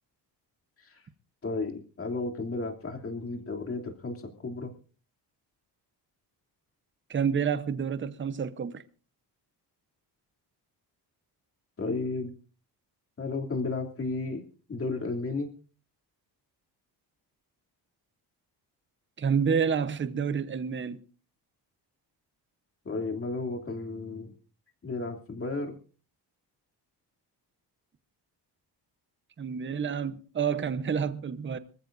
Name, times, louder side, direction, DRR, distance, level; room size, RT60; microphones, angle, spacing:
voice 1, 1.4-4.7 11.8-12.3 13.2-14.4 14.7-15.5 22.8-24.3 24.8-25.7, left 3 dB, 35° left, 2.9 m, -33 dB
voice 2, 7.1-8.8 19.2-21.0 29.4-31.6, right 7 dB, 30° right, 0.9 m, -29 dB
25.0 x 14.5 x 2.6 m
cardioid pair, 135°, 41 cm